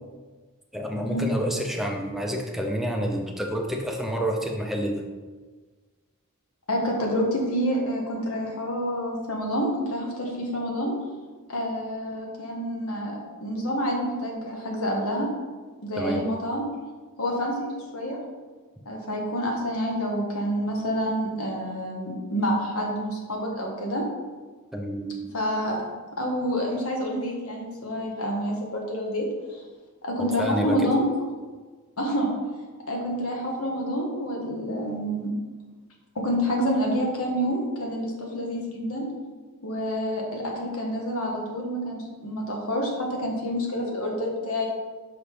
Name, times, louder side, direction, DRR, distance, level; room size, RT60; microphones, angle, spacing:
voice 1, 0.7-5.0 16.0-16.2 24.7-25.1 30.2-30.9, equal, ahead, 1 dB, 0.6 m, -28 dB
voice 2, 6.7-10.9 11.5-15.3 15.8-16.6 17.2-18.2 18.8-24.1 25.3-25.8 26.2-29.2 29.5-29.6 30.0-31.1 32.0-32.3 32.9-35.3 36.1-39.1 39.6-44.7, equal, 65° left, -1 dB, 1.4 m, -28 dB
5.7 x 5.7 x 3.4 m, 1.4 s
head